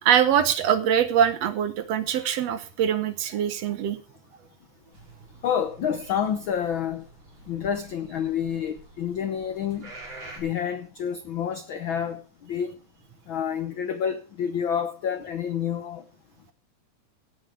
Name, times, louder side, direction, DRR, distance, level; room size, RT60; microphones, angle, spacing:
voice 1, 0.0-4.0, right 9 dB, 65° right, 1.9 m, -23 dB
sound 1, 4.9-10.4, right 2 dB, 35° right, 5.1 m, -47 dB
voice 2, 5.4-7.0 7.5-9.9 10.4-12.2 12.5-12.7 13.3-16.0, left 8 dB, 80° left, 1.1 m, -28 dB
16.5 x 8.6 x 4.9 m
omnidirectional pair, 3.5 m